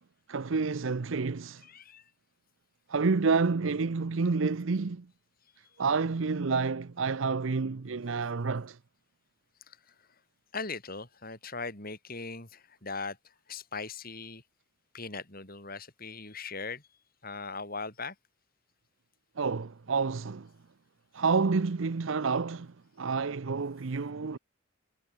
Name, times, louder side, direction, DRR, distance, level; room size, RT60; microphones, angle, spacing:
voice 1, 0.3-1.6 2.9-5.1 5.8-8.8 19.4-20.5 21.1-24.4, right 4 dB, 70° right, 0.6 m, -29 dB
voice 2, 1.6-2.0 9.7-9.8 10.5-13.2 13.5-14.4 14.9-16.8 17.2-18.2, left 4 dB, 45° left, 7.4 m, -39 dB
head